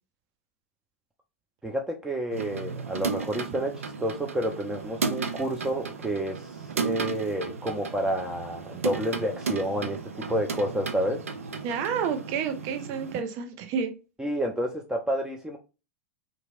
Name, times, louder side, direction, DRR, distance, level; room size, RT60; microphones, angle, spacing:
voice 1, 1.6-6.5 6.8-11.2 14.2-15.6, right 1 dB, 10° right, 1 dB, 0.5 m, -29 dB
sound 1, 2.3-13.2, right 5 dB, 80° right, 0.4 m, -34 dB
voice 2, 11.6-13.9, right 7 dB, 45° right, 6 dB, 0.7 m, -30 dB
2.9 x 2.7 x 2.3 m, 0.30 s
figure-of-eight pair, 95°, 7 cm